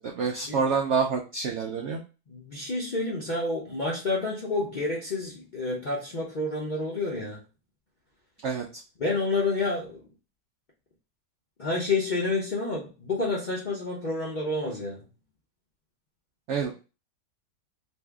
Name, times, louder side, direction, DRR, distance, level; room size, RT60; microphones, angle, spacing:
voice 1, 0.0-2.0 8.4-8.8 16.5-16.7, right 5 dB, 90° right, 0.6 m, -27 dB
voice 2, 2.3-7.4 9.0-10.0 11.6-15.0, left 3 dB, 60° left, 0.5 m, -29 dB
2.7 x 2.6 x 3.3 m
omnidirectional pair, 1.8 m